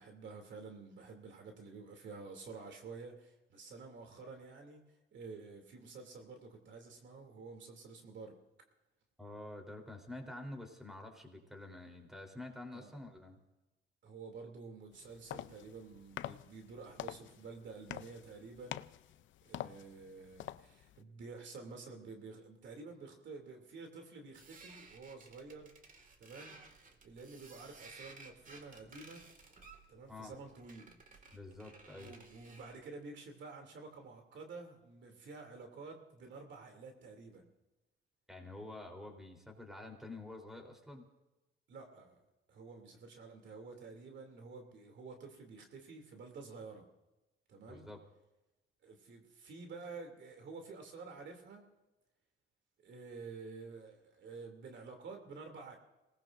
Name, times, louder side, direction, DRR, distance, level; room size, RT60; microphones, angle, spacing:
voice 1, 0.0-4.8 5.1-8.4 12.7-13.0 14.0-18.9 19.4-25.7 26.2-26.6 27.0-29.2 29.9-31.2 32.0-37.5 41.7-42.2 42.5-46.9 47.5-47.9 48.8-51.7 52.8-55.8, right 4 dB, 65° right, 3 dB, 2.8 m, -50 dB
voice 2, 9.2-13.4 30.1-30.3 31.3-32.1 38.3-41.0 47.7-48.0, left 2 dB, ahead, 3 dB, 3.7 m, -48 dB
sound 1, 14.9-21.0, left 13 dB, 75° left, 0.6 m, -47 dB
sound 2, 24.3-32.8, right 3 dB, 40° right, 2.1 m, -57 dB
26.5 x 19.5 x 2.6 m, 1.0 s
cardioid pair, 90°, 20 cm